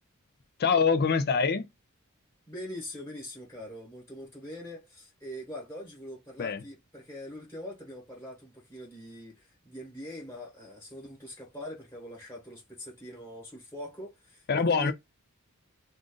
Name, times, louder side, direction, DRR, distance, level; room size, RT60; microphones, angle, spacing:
voice 1, 0.6-1.7 6.4-6.6 14.5-14.9, left 5 dB, 45° left, 0.5 m, -24 dB
voice 2, 2.5-14.9, left 1 dB, 10° left, 1.2 m, -43 dB
2.6 x 2.5 x 3.7 m
head